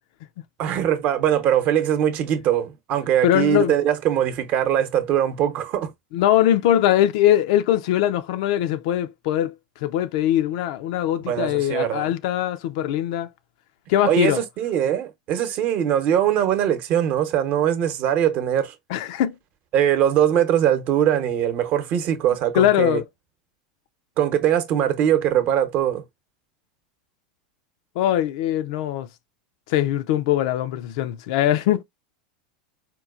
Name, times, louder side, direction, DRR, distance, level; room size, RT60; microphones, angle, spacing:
voice 1, 0.6-5.9 11.3-12.1 14.0-18.7 19.7-23.0 24.2-26.0, right 10 dB, 50° right, 0.9 m, -21 dB
voice 2, 3.2-3.7 6.1-9.5 9.8-13.3 13.9-14.4 18.9-19.4 22.5-23.0 28.0-29.1 29.7-31.8, left 12 dB, 65° left, 0.4 m, -21 dB
4.4 x 2.3 x 2.4 m
hypercardioid pair, 100°, 4 cm